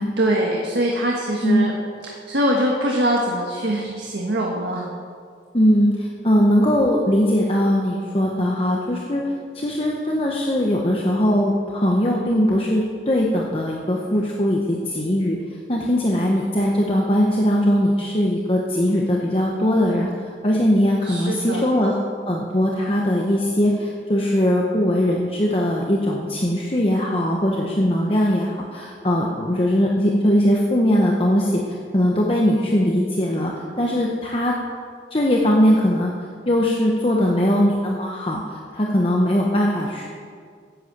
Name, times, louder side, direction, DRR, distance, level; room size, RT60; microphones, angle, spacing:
voice 1, 0.2-1.7 2.1-4.9 21.1-21.6, right 1 dB, 80° right, -1 dB, 1.5 m, -23 dB
voice 2, 5.5-15.4 15.7-20.1 20.4-22.0 22.3-33.5 33.8-34.6 35.1-36.1 36.5-40.1, equal, 30° left, -1 dB, 1.0 m, -20 dB
11.0 x 8.3 x 7.7 m, 2.1 s
head